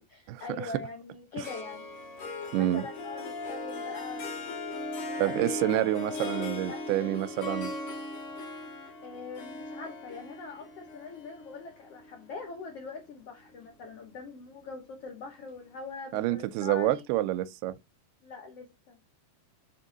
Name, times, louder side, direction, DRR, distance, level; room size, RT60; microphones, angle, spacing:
voice 1, 0.1-1.8 2.5-5.5 6.2-7.4 9.0-17.0 18.2-19.0, left 4 dB, 80° left, 1.3 m, -43 dB
Harp, 1.4-12.9, left 2 dB, 65° left, 1.3 m, -38 dB
voice 2, 2.5-2.8 5.2-7.7 16.1-17.8, right 15 dB, 85° right, 2.5 m, -28 dB
6.8 x 3.7 x 3.9 m
omnidirectional pair, 4.5 m